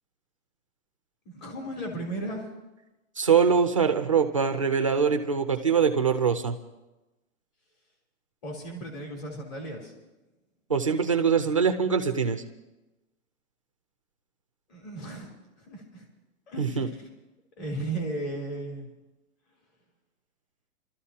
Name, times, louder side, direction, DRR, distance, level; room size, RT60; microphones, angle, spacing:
voice 1, 1.3-2.5 8.4-9.9 14.7-15.3 15.6-16.1 16.5-16.9 17.6-18.9, right 2 dB, 35° left, 0 dB, 3.5 m, -35 dB
voice 2, 3.2-6.5 10.7-12.4 16.6-16.9, right 6 dB, 25° right, 5 dB, 0.4 m, -23 dB
29.0 x 13.0 x 2.8 m, 1.0 s
hypercardioid pair, 170°, 42 cm